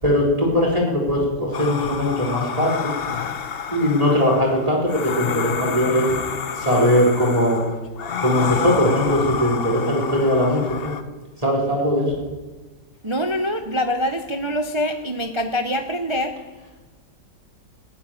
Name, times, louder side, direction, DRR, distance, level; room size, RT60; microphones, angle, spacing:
voice 1, 0.0-2.9 3.7-6.1 6.6-7.6 8.2-10.9 11.4-12.2, left 1 dB, 20° right, -3 dB, 3.6 m, -20 dB
sound 1, 1.5-11.0, left 7 dB, 55° left, 0.7 m, -29 dB
voice 2, 13.0-16.4, equal, 45° right, 6 dB, 0.3 m, -24 dB
15.0 x 7.8 x 10.0 m, 1.3 s
omnidirectional pair, 2.0 m